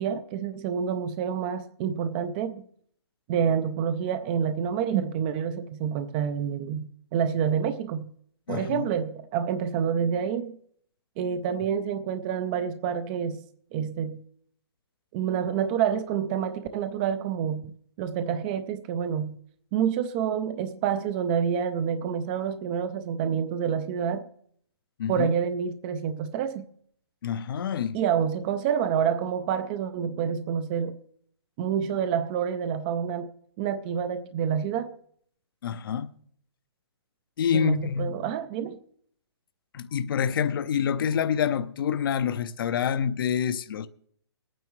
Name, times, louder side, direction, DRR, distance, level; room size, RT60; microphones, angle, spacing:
voice 1, 0.0-2.6 3.3-8.1 8.5-10.6 11.2-13.4 13.7-14.3 15.1-19.4 19.7-24.3 25.1-26.7 27.9-31.0 31.6-33.3 33.6-34.9 37.5-38.8, right 8 dB, 20° right, 0.4 m, -28 dB
voice 2, 8.5-8.9 25.0-25.3 27.2-28.0 35.6-36.1 37.4-38.2 39.7-43.9, left 8 dB, 55° left, 0.7 m, -27 dB
19.5 x 9.2 x 3.1 m
hypercardioid pair, 155°, 14 cm